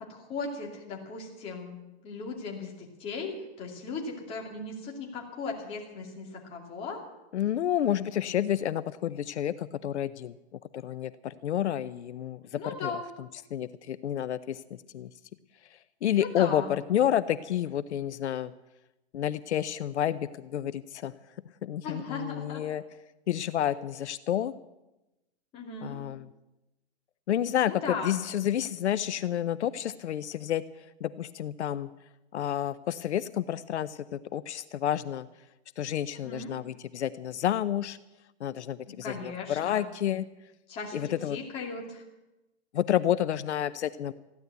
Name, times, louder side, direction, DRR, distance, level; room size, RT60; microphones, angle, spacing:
voice 1, 0.1-1.8 2.0-7.0 12.5-13.1 16.2-16.7 21.8-22.6 23.6-23.8 25.5-26.0 27.6-28.2 36.2-36.5 39.0-39.8 40.7-42.0, left 4 dB, 15° left, 0 dB, 2.4 m, -37 dB
voice 2, 7.3-10.3 10.7-12.9 13.5-14.6 14.9-15.1 16.0-18.5 19.1-21.1 21.6-22.8 23.3-24.5 25.8-26.3 27.3-30.6 31.0-31.9 32.3-35.3 35.8-38.0 38.4-40.3 40.9-41.4 42.7-44.1, left 11 dB, 80° left, 15 dB, 0.8 m, -30 dB
15.5 x 10.5 x 8.1 m, 0.97 s
hypercardioid pair, 170°, 34 cm